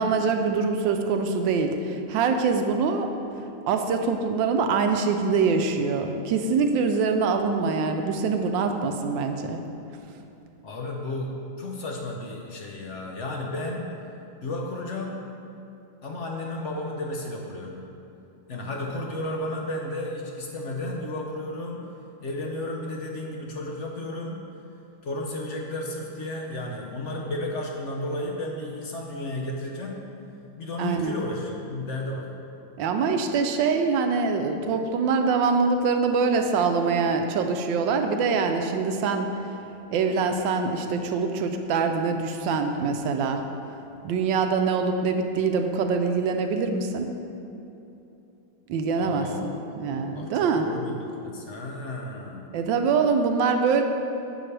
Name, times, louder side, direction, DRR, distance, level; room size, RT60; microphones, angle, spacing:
voice 1, 0.0-3.1 3.7-9.6 30.8-31.1 32.8-39.3 39.9-43.4 44.0-47.1 48.7-49.5 49.8-50.7 52.5-53.8, right 5 dB, 85° right, 5 dB, 1.3 m, -24 dB
voice 2, 10.6-13.9 14.4-15.2 16.0-17.8 18.5-21.9 22.2-24.4 25.0-30.0 30.6-32.3 49.0-49.8 50.1-52.6, left 1 dB, 55° left, 0 dB, 0.8 m, -33 dB
10.0 x 6.8 x 3.3 m, 2.8 s
omnidirectional pair, 2.0 m